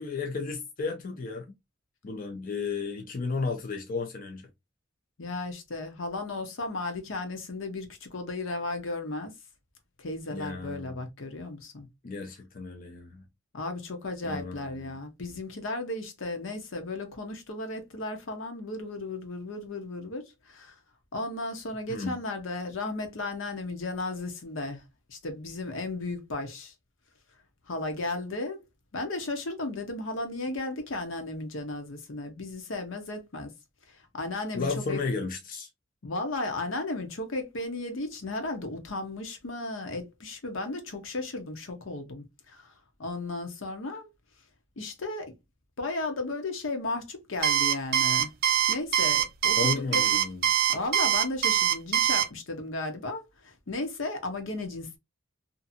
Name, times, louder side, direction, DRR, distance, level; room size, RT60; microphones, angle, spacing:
voice 1, 0.0-1.5 2.0-4.5 10.3-11.0 12.0-13.2 14.2-14.9 21.9-22.2 34.5-35.7 49.6-50.4, left 4 dB, 45° left, 0.5 m, -33 dB
voice 2, 5.2-9.3 10.0-11.9 13.5-20.8 21.1-24.8 25.1-26.7 27.7-28.6 28.9-33.5 33.9-35.0 36.0-42.7 43.0-44.1 44.8-45.3 45.8-48.3 48.7-50.0 50.7-55.0, left 2 dB, 75° left, 0.8 m, -35 dB
Alarm, 47.4-52.3, right 10 dB, 50° right, 0.4 m, -23 dB
2.7 x 2.5 x 2.5 m
head